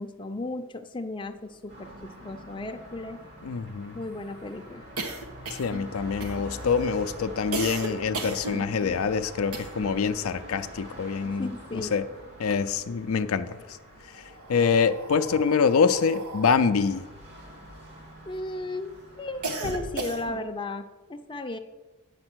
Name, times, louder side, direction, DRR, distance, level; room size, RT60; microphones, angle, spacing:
voice 1, 0.0-3.2 3.9-4.9 11.2-12.0 18.3-21.6, left 2 dB, 25° left, 5 dB, 0.6 m, -35 dB
sound 1, 1.7-20.3, equal, 50° right, 2.7 m, -46 dB
sound 2, 1.8-1.9 2.2-2.3 2.6-10.1 10.3-11.9 12.2-13.2 13.9-18.4 18.8-20.6, right 2 dB, 85° right, 1.3 m, -37 dB
voice 2, 3.4-3.9 5.5-11.5 11.9-12.0 12.4-13.8 14.5-17.1, left 5 dB, 70° left, 10 dB, 0.5 m, -25 dB
8.8 x 6.6 x 6.2 m, 1.2 s
head